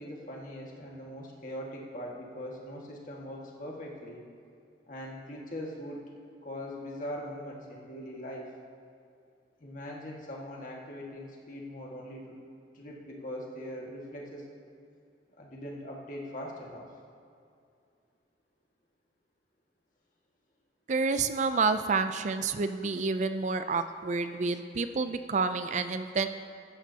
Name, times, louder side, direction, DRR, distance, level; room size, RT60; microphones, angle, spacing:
voice 1, 0.0-4.2 4.9-6.1 6.4-8.5 9.6-12.4 12.7-14.5 15.4-16.9, equal, 45° left, -2 dB, 1.8 m, -41 dB
voice 2, 20.9-26.3, right 4 dB, 40° right, 10 dB, 0.4 m, -29 dB
15.5 x 12.0 x 2.8 m, 2.4 s
head